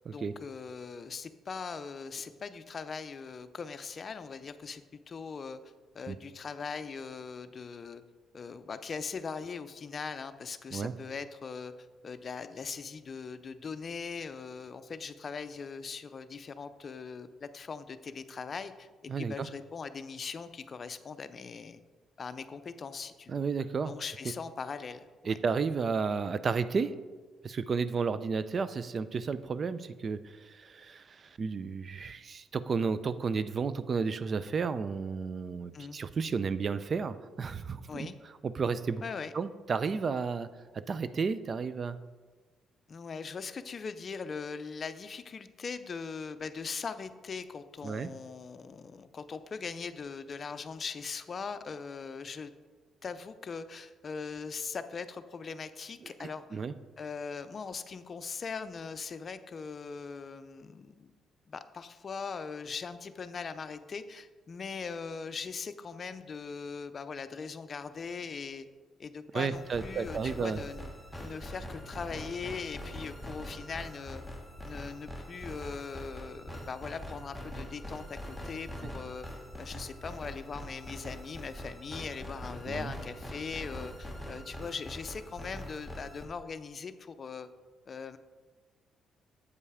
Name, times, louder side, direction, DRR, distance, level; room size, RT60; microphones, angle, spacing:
voice 1, 0.1-5.6 5.9-8.0 8.3-11.7 12.0-21.8 22.2-23.4 23.9-25.4 35.7-36.0 37.9-38.2 39.0-39.3 42.9-52.5 53.0-56.6 57.0-61.1 61.5-68.7 69.0-70.9 71.2-74.2 74.6-78.2 78.4-79.3 79.6-87.5 87.9-88.2, left 5 dB, 45° left, 12 dB, 0.5 m, -40 dB
voice 2, 19.1-19.5 23.3-23.9 25.3-26.9 27.4-38.1 38.4-39.0 39.3-40.5 40.9-42.0 47.8-48.1 56.0-56.7 69.3-70.6 82.7-82.9, right 5 dB, 45° right, 14 dB, 0.4 m, -32 dB
sound 1, 69.5-86.3, equal, 5° right, 1.3 m, -43 dB
8.1 x 5.4 x 4.9 m, 1.3 s
cardioid pair, 90°, 0 cm